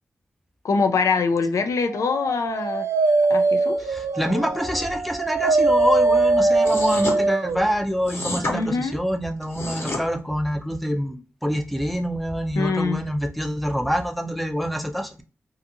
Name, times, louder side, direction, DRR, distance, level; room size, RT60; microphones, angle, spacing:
voice 1, 0.6-2.9 3.3-3.8 8.5-9.0 12.6-13.0, left 4 dB, 80° left, 0.4 m, -23 dB
Dog, 2.0-7.6, right 3 dB, 75° right, 0.4 m, -21 dB
voice 2, 3.8-15.2, equal, ahead, 0.4 m, -26 dB
sound 1, 6.6-7.2 8.0-8.6 9.4-10.0, left 2 dB, 50° left, 0.9 m, -29 dB
2.6 x 2.4 x 2.6 m
wide cardioid pair, 115°, 5 cm